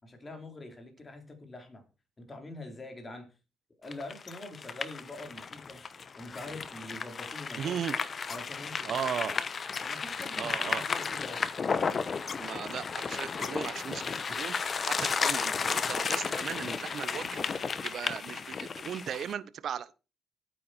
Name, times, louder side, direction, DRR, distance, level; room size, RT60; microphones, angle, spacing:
voice 1, 0.0-1.8 2.2-3.3 3.8-5.8 6.2-7.7 8.3-9.1 9.8-11.4, left 2 dB, 25° left, 4.4 m, -44 dB
sound 1, 3.9-19.3, left 5 dB, 40° left, 1.1 m, -33 dB
voice 2, 7.6-8.0 8.8-9.4 10.4-10.8 12.4-19.9, right 9 dB, 65° right, 1.1 m, -37 dB
12.0 x 9.5 x 4.6 m
cardioid pair, 90°, 0 cm